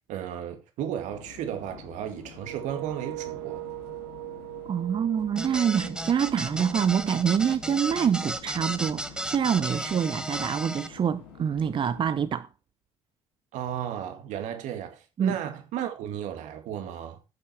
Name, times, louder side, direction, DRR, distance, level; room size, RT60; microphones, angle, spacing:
voice 1, 0.1-3.6 13.5-17.2, right 10 dB, 70° right, 2.1 m, -34 dB
sound 1, 1.1-12.3, left 5 dB, 85° left, 2.6 m, -48 dB
sound 2, 2.4-7.2, right 22 dB, 90° right, 0.6 m, -40 dB
voice 2, 4.7-12.5 15.2-15.4, right 8 dB, 40° right, 0.6 m, -26 dB
sound 3, 5.4-10.9, right 1 dB, 5° right, 1.1 m, -34 dB
9.9 x 6.9 x 4.4 m
hypercardioid pair, 60°, 13 cm